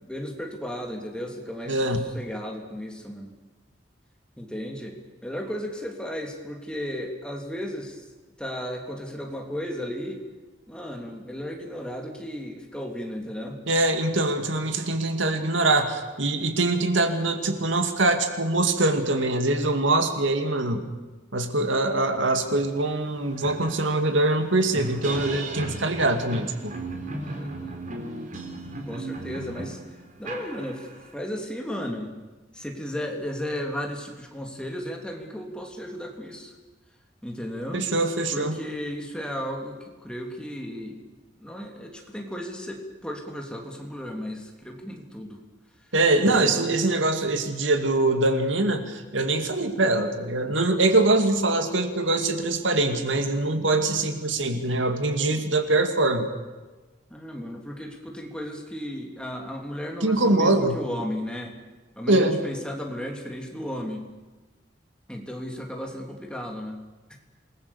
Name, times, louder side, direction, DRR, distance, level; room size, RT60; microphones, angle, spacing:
voice 1, 0.1-1.8 2.1-3.3 4.4-4.9 5.2-8.0 8.4-10.2 10.7-13.6 27.2-27.8 28.8-29.8 30.2-30.9 31.1-32.1 32.5-36.5 37.2-37.9 38.3-41.0 41.4-45.4 46.3-47.0 57.1-61.5 62.0-64.1 65.1-66.8, equal, 5° left, 1 dB, 3.0 m, -34 dB
voice 2, 1.7-2.0 13.7-20.8 21.3-26.7 37.7-38.6 45.9-56.3 60.0-60.8 62.1-62.4, right 2 dB, 80° right, 6 dB, 2.4 m, -23 dB
sound 1, 22.6-22.7 23.0-31.1, right 2 dB, 45° right, 3.7 m, -35 dB
27.5 x 20.0 x 7.2 m, 1.2 s
head